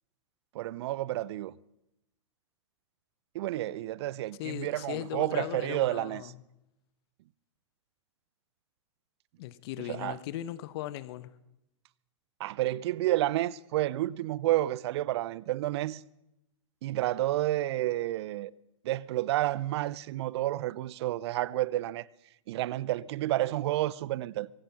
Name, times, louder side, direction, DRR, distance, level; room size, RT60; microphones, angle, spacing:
voice 1, 0.5-1.5 3.3-6.3 9.9-10.2 12.4-16.0 16.8-18.5 18.8-22.0 22.5-24.5, right 15 dB, 55° right, 0.5 m, -30 dB
voice 2, 4.4-6.4 9.4-11.3, left 14 dB, 50° left, 0.9 m, -38 dB
23.5 x 10.5 x 5.6 m
hypercardioid pair, 115°, 17 cm